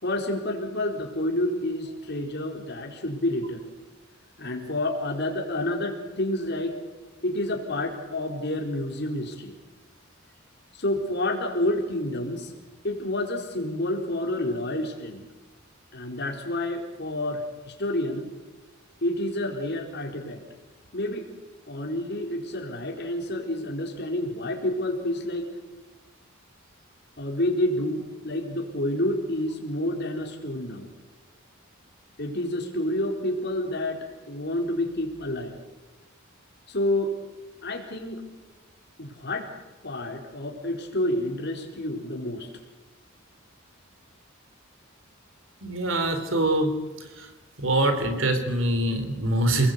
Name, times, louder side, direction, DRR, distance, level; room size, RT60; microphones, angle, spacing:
voice 1, 0.0-3.6 4.4-6.8 7.2-9.5 10.7-12.5 12.8-15.2 15.9-18.3 19.0-20.4 20.9-21.3 21.7-25.5 27.2-30.9 32.2-35.6 36.7-37.1 37.6-38.2 39.0-39.5 39.8-42.5, left 1 dB, 55° left, 1 dB, 4.2 m, -29 dB
voice 2, 45.6-46.7 47.2-47.3 47.6-49.7, right 1 dB, 70° right, 7 dB, 4.3 m, -24 dB
30.0 x 20.5 x 8.2 m, 1.2 s
head